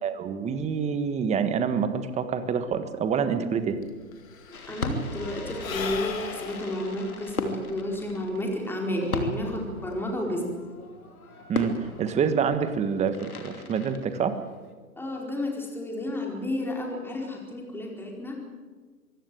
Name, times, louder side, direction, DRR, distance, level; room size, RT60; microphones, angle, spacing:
voice 1, 0.0-3.8 11.5-14.4, right 6 dB, 15° right, 10 dB, 1.5 m, -27 dB
Sigh / Breathing, 3.5-3.6 3.8-8.6, left 6 dB, 70° left, 2.9 m, -39 dB
Fireworks, 4.5-14.7, left 2 dB, 85° left, 3.0 m, -37 dB
voice 2, 4.5-10.6 15.0-18.4, left 1 dB, 5° left, 0 dB, 4.5 m, -31 dB
24.5 x 16.5 x 7.9 m, 1.4 s
hypercardioid pair, 125°, 42 cm